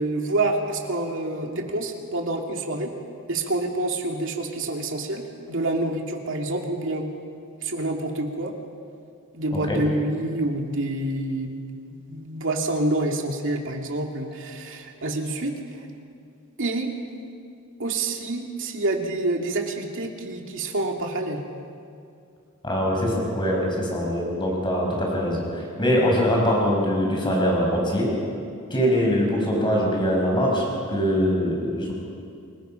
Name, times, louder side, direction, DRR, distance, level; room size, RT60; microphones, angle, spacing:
voice 1, 0.0-2.9 3.3-7.1 7.6-8.5 9.3-11.6 11.9-15.9 16.6-16.9 17.8-21.4, right 2 dB, 60° right, 2 dB, 2.4 m, -27 dB
voice 2, 22.6-28.1 28.7-31.9, equal, 20° left, -1 dB, 5.4 m, -23 dB
28.5 x 19.5 x 5.8 m, 2.4 s
head